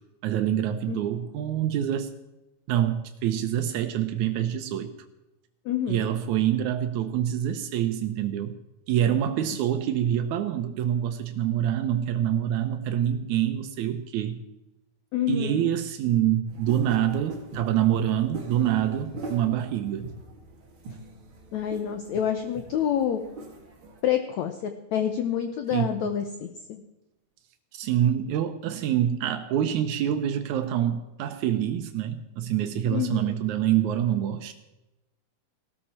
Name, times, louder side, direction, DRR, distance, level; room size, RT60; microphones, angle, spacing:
voice 1, 0.2-2.1 2.7-4.9 5.9-8.6 8.9-14.4 15.3-20.1 25.7-26.2 27.7-34.5, right 10 dB, 85° right, 8 dB, 1.6 m, -26 dB
voice 2, 5.6-6.1 15.1-15.7 21.5-23.2 24.0-26.8 32.9-33.3, left 9 dB, 80° left, 7 dB, 1.6 m, -28 dB
sound 1, 16.5-24.0, right 2 dB, 40° right, 2.1 m, -42 dB
18.5 x 13.5 x 4.4 m, 0.96 s
omnidirectional pair, 4.4 m